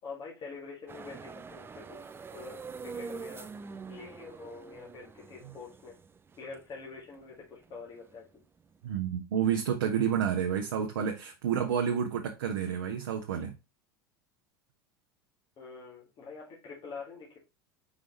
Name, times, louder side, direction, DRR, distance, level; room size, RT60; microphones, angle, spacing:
voice 1, 0.0-2.6 2.8-6.0 6.4-8.3 15.6-17.4, left 4 dB, 40° left, 2.2 m, -46 dB
sound 1, 0.9-8.9, right 5 dB, 20° right, 0.5 m, -45 dB
voice 2, 8.8-13.5, right 8 dB, 70° right, 0.8 m, -30 dB
5.0 x 4.9 x 3.9 m
hypercardioid pair, 75°, 12 cm